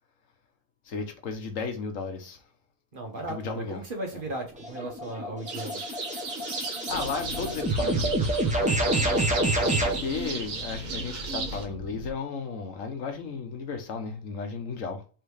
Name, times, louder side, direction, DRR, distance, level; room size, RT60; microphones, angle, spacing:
voice 1, 0.8-2.4 3.1-3.8 4.1-4.3 6.9-8.3 10.0-15.0, left 5 dB, 75° left, 1.3 m, -34 dB
voice 2, 2.9-5.8 9.6-10.1, right 2 dB, 45° right, 1.2 m, -37 dB
sound 1, 4.6-10.0, right 1 dB, 5° right, 0.7 m, -27 dB
sound 2, 5.5-11.7, right 4 dB, 80° right, 1.3 m, -36 dB
sound 3, 6.9-12.1, left 1 dB, 40° left, 1.3 m, -40 dB
4.5 x 3.2 x 3.3 m
omnidirectional pair, 1.4 m